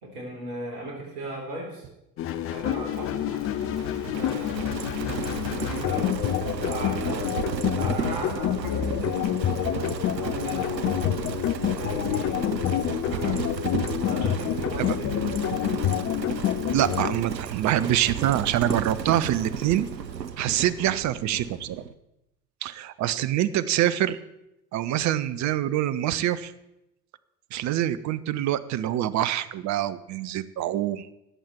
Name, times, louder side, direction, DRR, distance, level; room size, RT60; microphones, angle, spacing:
voice 1, 0.0-1.9 2.5-3.2 4.1-6.1 6.5-7.3 7.7-11.1 11.8-12.5 13.0-13.4 14.1-15.1, right 2 dB, 60° right, 0 dB, 4.0 m, -38 dB
sound 1, 2.2-17.2, left 11 dB, 30° left, 0.5 m, -28 dB
Livestock farm animals working animals, 2.3-21.9, right 8 dB, 85° right, 0.7 m, -34 dB
voice 2, 16.7-19.9 20.4-21.8 22.6-24.2 24.7-26.5 27.5-31.1, right 12 dB, 35° right, 14 dB, 0.7 m, -25 dB
18.0 x 7.4 x 4.5 m, 0.89 s
figure-of-eight pair, 65°, 50 cm